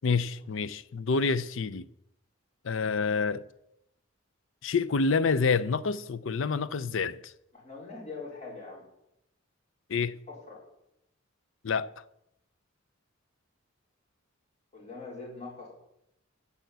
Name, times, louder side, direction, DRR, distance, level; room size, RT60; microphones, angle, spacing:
voice 1, 0.0-1.9 2.6-3.4 4.6-7.3 9.9-10.2 11.6-11.9, left 4 dB, 65° left, 0.5 m, -28 dB
voice 2, 7.5-8.8 10.3-10.6 14.7-15.7, left 3 dB, 35° left, 4.5 m, -43 dB
8.6 x 7.1 x 8.0 m
head